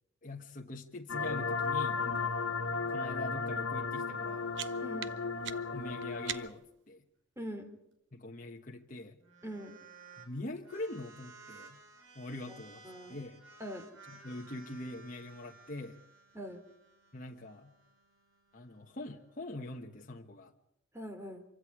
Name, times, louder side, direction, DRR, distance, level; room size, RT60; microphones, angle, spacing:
voice 1, 0.2-2.3 2.9-4.5 5.5-7.0 8.1-9.2 10.2-11.8 12.1-12.8 13.1-13.4 14.1-16.0 17.1-17.7 18.5-20.5, left 2 dB, 40° left, 1 dB, 1.3 m, -43 dB
sound 1, 1.1-6.5, left 4 dB, 90° left, 1.7 m, -34 dB
sound 2, 4.1-6.8, right 11 dB, 65° right, 0.8 m, -44 dB
voice 2, 7.4-7.7 9.4-9.8 12.5-12.6 12.8-13.2 13.6-13.9 16.3-16.6 20.9-21.4, equal, 15° right, 5 dB, 3.3 m, -42 dB
sound 3, 9.2-10.3 10.6-20.1, right 3 dB, 80° right, 5.8 m, -57 dB
26.5 x 24.5 x 4.9 m, 0.82 s
head